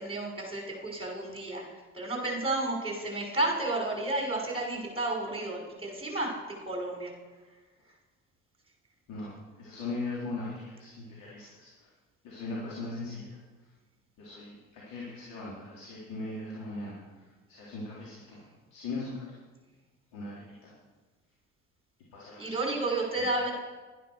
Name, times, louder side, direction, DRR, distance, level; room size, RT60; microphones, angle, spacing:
voice 1, 0.0-1.7 1.9-6.3 6.7-7.1 22.4-23.5, right 2 dB, 15° right, 0 dB, 5.6 m, -31 dB
voice 2, 9.1-11.7 12.2-13.3 14.2-17.0 17.5-18.4 18.7-19.1 20.1-20.7 22.1-22.7 23.1-23.2, left 2 dB, 70° left, -5 dB, 3.8 m, -39 dB
12.0 x 10.0 x 6.5 m, 1.3 s
hypercardioid pair, 65°, 37 cm